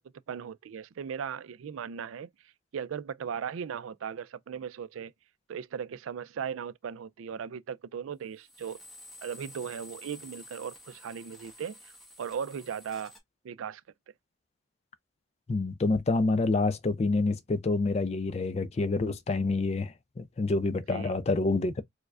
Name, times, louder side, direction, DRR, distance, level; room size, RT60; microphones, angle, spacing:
voice 1, 0.3-5.1 5.5-8.8 9.2-11.9 12.2-13.1 13.4-13.8 20.9-21.1, right 7 dB, 85° right, 0.3 m, -37 dB
sound 1, 8.4-13.2, left 1 dB, ahead, 1.1 m, -51 dB
voice 2, 15.5-21.8, left 3 dB, 30° left, 0.3 m, -27 dB
4.7 x 2.1 x 2.4 m
head